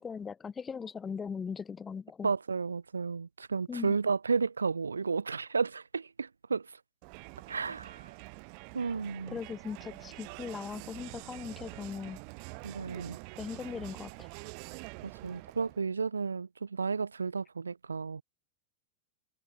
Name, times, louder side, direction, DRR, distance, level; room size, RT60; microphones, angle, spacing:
voice 1, 0.0-2.3 3.7-4.0 9.3-12.2 13.4-14.3, left 6 dB, 20° left, 1.1 m, -39 dB
voice 2, 2.2-6.8 7.5-8.1 8.7-9.4 12.6-13.2 15.0-18.2, right 5 dB, 75° right, 1.5 m, -32 dB
Crowd, 7.0-15.9, right 40 dB or more, 45° right, 4.2 m, -46 dB
figure-of-eight pair, 90°, 0 cm